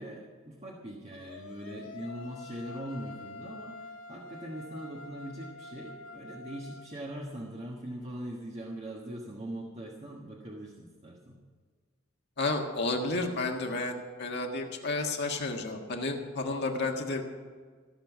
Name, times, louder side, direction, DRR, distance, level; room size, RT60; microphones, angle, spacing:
voice 1, 0.0-11.4, right 1 dB, 30° right, -2 dB, 1.5 m, -41 dB
sound 1, 1.1-6.9, left 3 dB, 85° left, 2.2 m, -46 dB
voice 2, 12.4-17.2, left 2 dB, 55° left, 1 dB, 1.7 m, -31 dB
16.0 x 6.9 x 9.2 m, 1.5 s
head